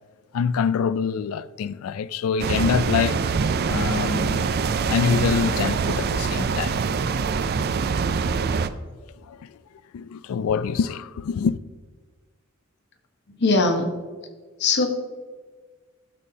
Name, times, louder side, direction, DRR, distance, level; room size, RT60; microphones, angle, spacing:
voice 1, 0.3-3.3 3.6-4.5 4.9-6.8 9.1-9.6 9.9-11.6, left 6 dB, 75° left, 0.3 m, -25 dB
sound 1, 2.4-8.7, right 5 dB, 45° right, 0.3 m, -24 dB
voice 2, 13.4-13.9 14.6-14.9, left 3 dB, 50° left, 1.0 m, -20 dB
12.0 x 7.1 x 2.8 m
head